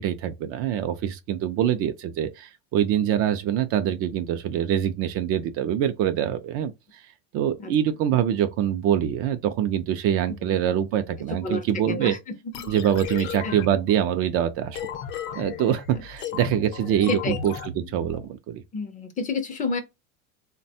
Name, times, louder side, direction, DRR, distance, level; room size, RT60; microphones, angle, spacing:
voice 1, 0.0-12.2 12.7-14.8 15.4-18.6, right 10 dB, 40° right, 0.4 m, -25 dB
voice 2, 11.4-12.2 13.4-13.5 17.1-17.4 18.7-19.8, left 4 dB, 25° left, 0.5 m, -29 dB
sound 1, 12.5-18.3, left 8 dB, 65° left, 0.7 m, -35 dB
3.2 x 2.2 x 2.7 m
supercardioid pair, 125°, 35 cm